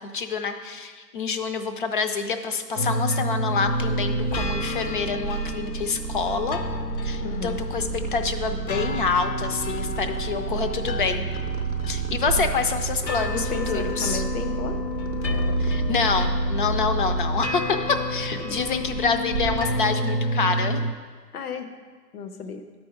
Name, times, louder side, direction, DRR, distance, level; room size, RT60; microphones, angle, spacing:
voice 1, 0.0-6.6 7.0-11.2 11.9-14.2 15.6-20.9, left 5 dB, 35° left, 7 dB, 0.5 m, -27 dB
sound 1, 2.8-20.9, left 1 dB, 85° left, 0.8 m, -29 dB
Purr, 3.3-20.1, right 8 dB, 30° right, 0.5 m, -32 dB
voice 2, 7.2-7.6 12.1-12.5 13.3-14.8 21.3-21.7 22.1-22.6, left 6 dB, 65° left, 7 dB, 1.0 m, -33 dB
11.5 x 4.7 x 5.3 m, 1.5 s
figure-of-eight pair, 130°, 49 cm